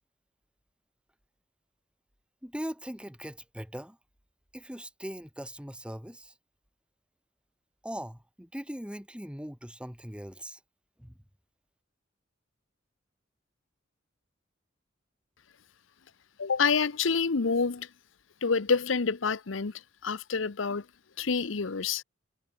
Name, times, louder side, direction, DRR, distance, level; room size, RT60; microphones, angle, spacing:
voice 1, 2.4-4.0 4.5-6.3 7.8-10.6 11.0-11.1, equal, 5° right, 5.6 m, -40 dB
voice 2, 16.4-17.9 18.4-19.7 20.0-20.8 21.2-22.0, left 5 dB, 80° left, 0.8 m, -27 dB
head